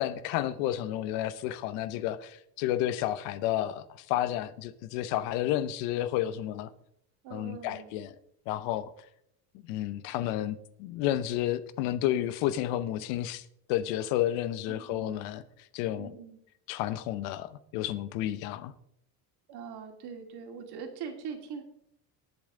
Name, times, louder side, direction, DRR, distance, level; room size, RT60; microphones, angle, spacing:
voice 1, 0.0-6.7 7.3-8.1 8.5-8.9 9.6-15.4 15.7-16.1 16.7-18.7, left 12 dB, 85° left, 1.0 m, -31 dB
voice 2, 7.2-8.0 14.7-15.3 16.0-16.4 19.5-21.6, right 6 dB, 55° right, 2.5 m, -42 dB
19.5 x 7.1 x 3.8 m
cardioid pair, 125°, 45 cm